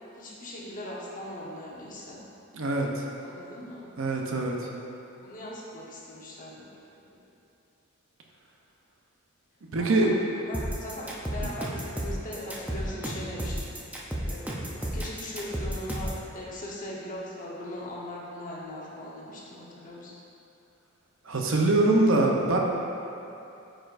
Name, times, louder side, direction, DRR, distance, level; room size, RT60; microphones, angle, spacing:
voice 1, 0.2-2.2 3.2-3.9 5.1-7.2 9.8-14.0 14.3-20.1, left 1 dB, 40° left, -5 dB, 1.0 m, -40 dB
voice 2, 2.5-3.0 4.0-4.6 9.7-10.1 11.4-11.5 21.3-22.6, right 2 dB, 65° right, 0 dB, 0.7 m, -23 dB
sound 1, 10.5-16.2, right 1 dB, 5° right, 0.6 m, -32 dB
8.9 x 4.5 x 2.6 m, 2.8 s
head